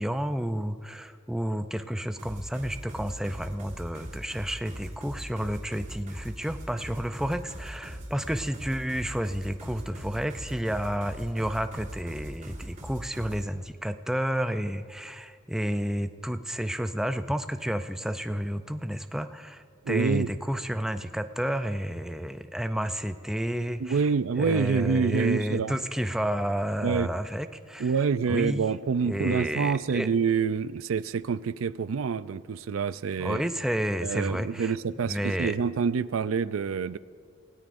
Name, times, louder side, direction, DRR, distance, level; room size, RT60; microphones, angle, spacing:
voice 1, 0.0-24.0 24.4-27.9 28.3-28.6 29.0-30.1 33.2-34.7 35.0-35.6, equal, 5° right, 8 dB, 0.4 m, -31 dB
sound 1, 2.2-13.4, equal, 40° right, 3.4 m, -40 dB
voice 2, 19.8-20.3 23.8-25.8 26.8-27.1 27.8-33.4 34.0-37.0, right 5 dB, 85° right, 16 dB, 0.4 m, -27 dB
28.5 x 17.5 x 2.6 m, 2.1 s
head